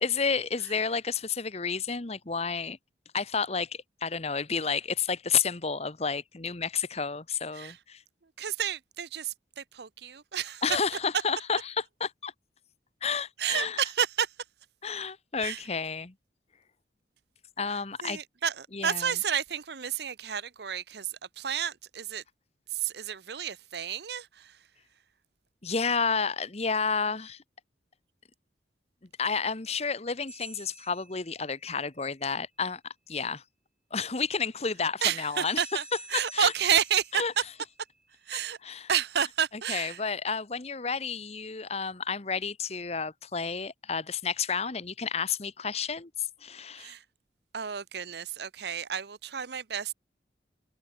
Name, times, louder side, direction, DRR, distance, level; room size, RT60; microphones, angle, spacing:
voice 1, 0.0-2.8 3.1-8.0 10.6-12.3 13.0-13.8 14.8-16.1 17.6-18.2 18.7-19.1 25.6-27.4 29.2-32.8 33.1-33.4 33.9-35.6 36.1-36.5 37.1-37.3 38.6-38.9 39.5-46.9, left 5 dB, 35° left, 1.1 m, -31 dB
voice 2, 8.4-10.6 13.4-14.3 15.4-15.6 18.0-21.1 21.4-22.2 22.8-24.5 35.0-35.8 36.1-37.4 38.3-38.6 38.9-40.0 46.8-47.0 47.5-49.9, right 8 dB, 65° right, 0.8 m, -30 dB
sound 1, 30.3-31.8 35.4-38.0, right 2 dB, 5° right, 7.5 m, -48 dB
open air
head